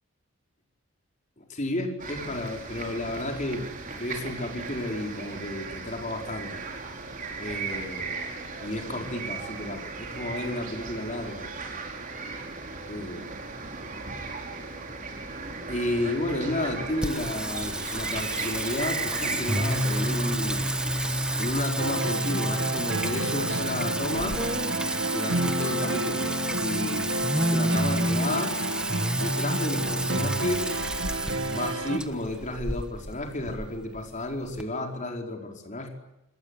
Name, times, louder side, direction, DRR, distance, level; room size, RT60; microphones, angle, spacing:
voice 1, 1.4-6.6 7.4-8.2 8.6-11.5 12.9-13.4 15.7-20.7 20.9-24.4 25.1-26.3 26.6-28.6 29.2-30.7 31.5-35.9, left 1 dB, 40° left, 2 dB, 4.8 m, -32 dB
sound 1, 2.0-21.6, right 4 dB, 40° right, 5.0 m, -36 dB
Singing, 17.0-34.6, right 1 dB, 5° right, 1.3 m, -30 dB
sound 2, 21.8-32.0, right 2 dB, 75° right, 1.8 m, -30 dB
27.5 x 20.0 x 9.8 m, 0.90 s
head